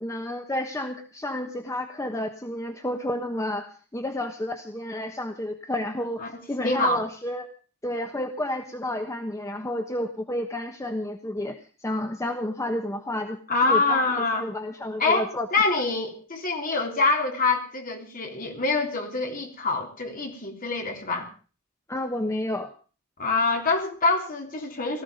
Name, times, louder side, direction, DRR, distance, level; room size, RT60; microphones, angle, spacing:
voice 1, 0.0-6.2 6.5-7.5 7.8-11.6 11.8-15.5 21.9-22.7, left 1 dB, 15° left, 6 dB, 1.2 m, -31 dB
voice 2, 6.6-7.0 13.5-14.4 15.0-21.3 23.2-25.0, left 3 dB, 40° left, 3 dB, 3.5 m, -25 dB
18.0 x 14.5 x 5.2 m, 0.40 s
head